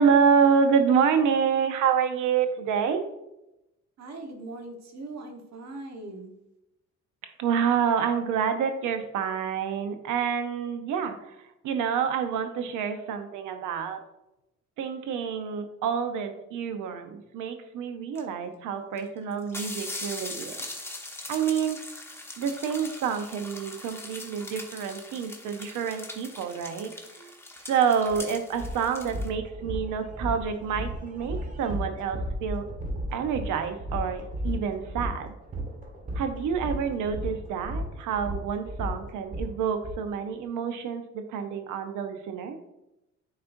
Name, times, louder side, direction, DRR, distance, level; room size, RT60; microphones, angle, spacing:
voice 1, 0.0-3.0 7.2-11.3 11.6-14.0 14.8-20.6 21.3-21.8 22.4-26.9 27.2-27.4 27.7-32.7 33.1-35.3 36.1-42.6, right 7 dB, 90° right, 7 dB, 0.8 m, -27 dB
voice 2, 4.0-6.3, right 2 dB, 60° right, 3 dB, 1.3 m, -40 dB
sound 1, 18.1-18.2 19.0-19.1 19.3-29.3, left 2 dB, 10° left, 1.0 m, -41 dB
sound 2, 28.1-28.2 28.5-39.9, equal, 25° right, 1.3 m, -34 dB
9.6 x 4.2 x 2.6 m, 0.89 s
cardioid pair, 90°, 30 cm